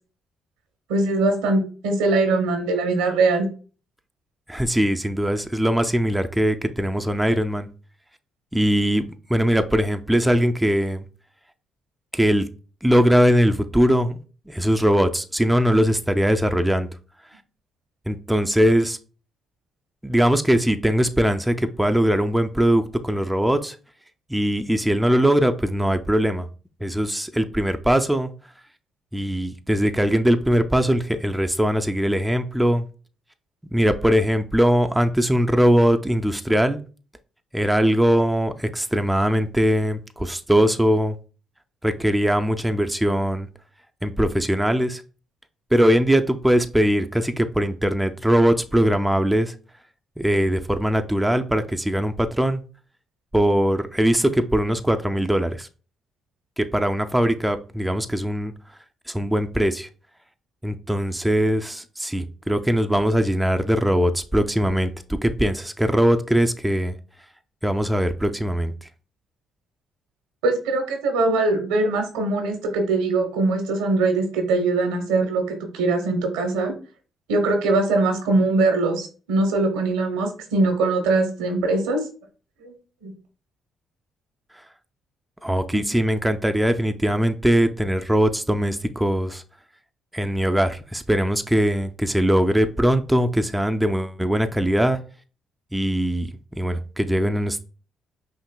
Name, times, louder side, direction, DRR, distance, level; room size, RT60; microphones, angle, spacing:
voice 1, 0.9-3.5 70.4-76.7 77.3-82.0 82.6-82.7 83.0-83.1 85.7-85.8, right 3 dB, 90° right, 4 dB, 0.8 m, -22 dB
voice 2, 4.5-7.7 8.5-9.0 9.3-11.0 12.1-12.4 12.8-14.2 14.5-16.9 18.1-19.0 20.0-23.8 24.3-26.5 26.8-28.3 29.1-32.9 33.7-36.8 37.5-41.2 41.8-43.5 44.0-45.0 45.7-49.5 50.2-52.6 53.3-55.7 56.6-58.5 59.1-59.9 60.6-67.0 67.6-68.7 85.4-89.4 90.1-95.0 95.7-96.3 96.6-97.6, equal, 5° right, 7 dB, 0.4 m, -21 dB
5.6 x 2.5 x 2.2 m, 0.37 s
supercardioid pair, 55°, 0 cm